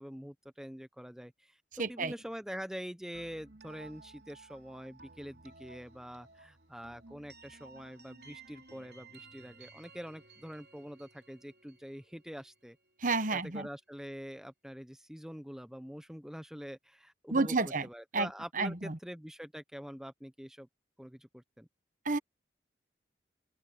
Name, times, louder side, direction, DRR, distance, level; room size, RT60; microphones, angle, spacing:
voice 1, 0.0-12.8 13.3-17.6 17.8-20.7 21.0-21.7, equal, 5° right, 0.8 m, -45 dB
voice 2, 1.8-2.1 13.0-13.7 17.3-17.9 18.1-18.3 18.5-19.0 22.0-22.2, right 3 dB, 45° right, 1.2 m, -30 dB
sound 1, 3.1-12.9, right 3 dB, 60° right, 3.6 m, -56 dB
open air
head